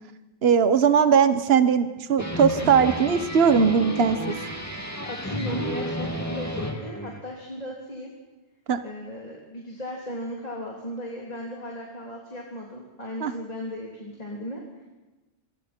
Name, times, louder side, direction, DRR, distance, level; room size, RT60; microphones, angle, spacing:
voice 1, 0.4-4.4 8.7-8.8 13.2-13.3, right 6 dB, 65° right, 10 dB, 1.2 m, -20 dB
sound 1, 2.2-7.2, equal, 15° left, 2.6 m, -32 dB
voice 2, 5.0-8.1 8.8-14.6, equal, 35° left, -2 dB, 3.6 m, -36 dB
27.5 x 24.5 x 4.5 m, 1.1 s
omnidirectional pair, 1.1 m